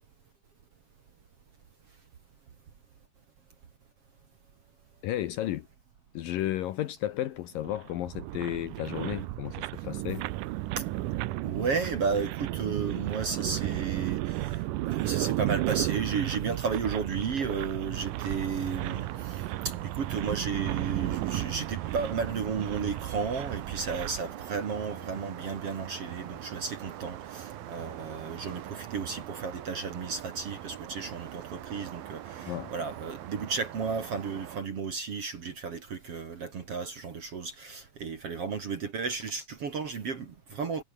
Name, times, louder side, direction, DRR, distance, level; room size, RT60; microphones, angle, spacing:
voice 1, 5.0-5.7 6.1-10.3 32.5-32.7, left 13 dB, 70° left, 2.3 m, -33 dB
sound 1, 7.6-24.2, right 17 dB, 90° right, 1.8 m, -33 dB
voice 2, 11.4-40.8, right 5 dB, 45° right, 2.3 m, -33 dB
sound 2, 17.9-34.6, right 12 dB, 65° right, 3.1 m, -42 dB
omnidirectional pair, 4.8 m